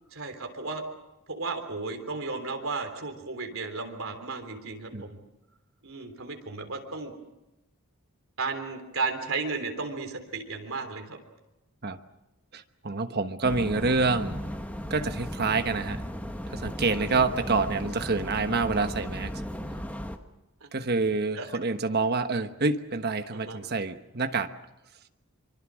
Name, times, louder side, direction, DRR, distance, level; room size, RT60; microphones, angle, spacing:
voice 1, 0.1-0.8 1.3-5.2 5.8-7.1 8.4-11.2 21.3-21.5 23.3-23.6, right 4 dB, 60° right, 4 dB, 3.5 m, -34 dB
voice 2, 12.5-14.5 14.9-16.0 16.5-19.3 20.7-24.5, right 3 dB, 45° right, 8 dB, 1.2 m, -27 dB
sound 1, 13.4-20.2, equal, 5° left, 1.2 m, -36 dB
25.5 x 24.5 x 6.4 m, 0.96 s
head